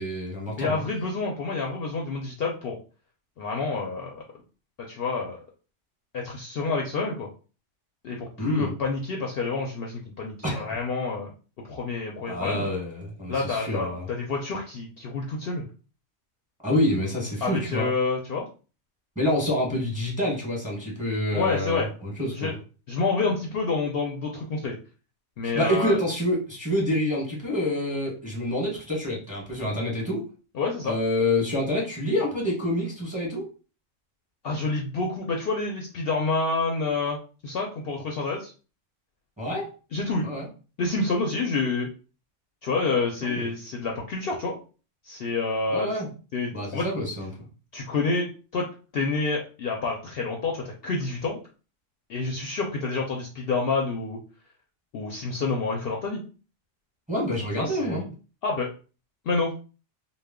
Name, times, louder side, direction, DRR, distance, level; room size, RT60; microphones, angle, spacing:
voice 1, 0.0-0.8 8.4-8.7 10.4-10.6 12.3-14.1 16.6-17.9 19.2-22.5 25.4-30.2 30.8-33.4 39.4-39.7 40.2-40.5 43.2-43.5 45.7-46.1 46.5-47.3 57.1-58.1, left 1 dB, 5° right, -4 dB, 0.8 m, -27 dB
voice 2, 0.6-2.8 3.4-4.2 4.8-5.4 6.1-7.3 8.0-11.3 11.7-12.6 13.3-15.6 17.4-18.5 21.3-21.9 22.3-22.6 22.9-24.7 25.4-26.0 30.5-30.9 34.4-38.5 39.9-40.3 40.8-41.9 42.6-44.6 45.0-45.9 46.3-46.9 47.7-48.7 48.9-51.4 52.1-54.2 54.9-56.2 57.6-58.0 58.4-58.7 59.3-59.5, left 3 dB, 65° left, 0 dB, 0.7 m, -28 dB
2.2 x 2.1 x 3.4 m, 0.35 s
omnidirectional pair, 1.3 m